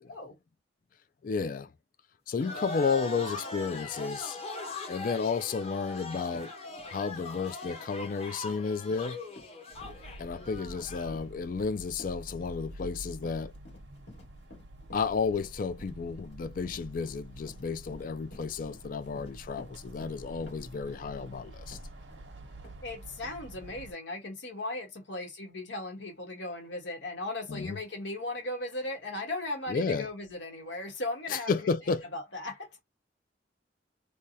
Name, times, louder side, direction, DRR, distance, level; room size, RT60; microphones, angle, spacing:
voice 1, 0.1-0.4 10.4-10.5 22.8-31.7 32.1-32.8, left 2 dB, 90° left, 1.3 m, -37 dB
voice 2, 1.2-1.7 2.3-4.4 4.9-6.5 6.9-9.2 10.2-13.5 14.9-21.8 27.5-27.8 29.7-30.1 31.3-32.1, left 5 dB, 50° left, 0.4 m, -32 dB
sound 1, 2.4-11.2, left 3 dB, 35° left, 0.9 m, -41 dB
Run, 6.3-22.3 22.6-22.8 23.2-23.3, left 1 dB, 65° left, 1.9 m, -53 dB
sound 2, 9.7-23.9, right 1 dB, 85° right, 0.8 m, -47 dB
3.4 x 2.2 x 2.7 m
head